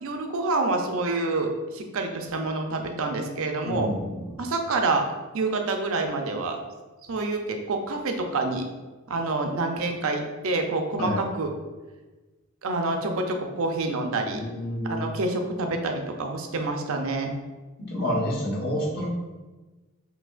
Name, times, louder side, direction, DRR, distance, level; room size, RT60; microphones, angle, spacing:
voice 1, 0.0-3.9 4.4-5.0 5.3-6.6 7.1-8.6 9.1-11.5 12.6-14.4 14.9-17.3, right 3 dB, 65° right, 4 dB, 0.6 m, -27 dB
voice 2, 3.6-4.3 11.0-11.2 14.3-15.0 17.8-19.1, left 1 dB, 50° left, -5 dB, 1.0 m, -29 dB
6.0 x 2.8 x 2.4 m, 1.2 s
head